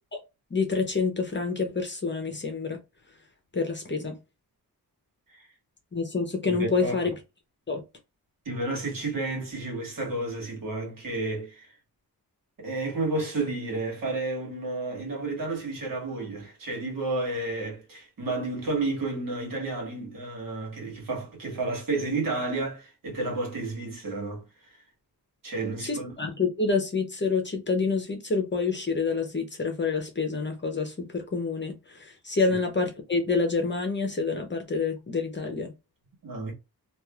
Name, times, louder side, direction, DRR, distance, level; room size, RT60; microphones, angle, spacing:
voice 1, 0.5-2.8 3.5-4.2 5.9-7.1 7.7-7.8 25.8-35.7, left 4 dB, 30° left, 0.8 m, -28 dB
voice 2, 6.5-6.9 8.4-11.7 12.6-24.7 25.4-26.1 32.5-32.6 36.2-36.5, right 2 dB, 60° right, 1.7 m, -31 dB
3.1 x 2.5 x 2.4 m
wide cardioid pair, 110°, 38 cm